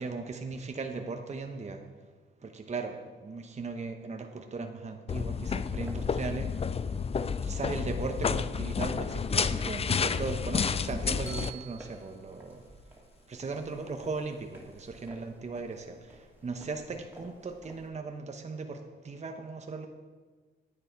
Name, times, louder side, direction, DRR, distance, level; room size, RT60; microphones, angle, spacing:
voice 1, 0.0-1.8 2.4-6.8 7.4-12.7 13.3-19.9, right 4 dB, 35° right, 5 dB, 0.9 m, -38 dB
sound 1, 5.1-11.5, left 6 dB, 30° left, 0.4 m, -30 dB
sound 2, 5.8-17.9, right 1 dB, 10° right, 2.7 m, -55 dB
Bell, 11.3-13.4, right 7 dB, 15° left, 2.0 m, -49 dB
10.0 x 8.9 x 4.6 m, 1.4 s
cardioid pair, 85°, 19 cm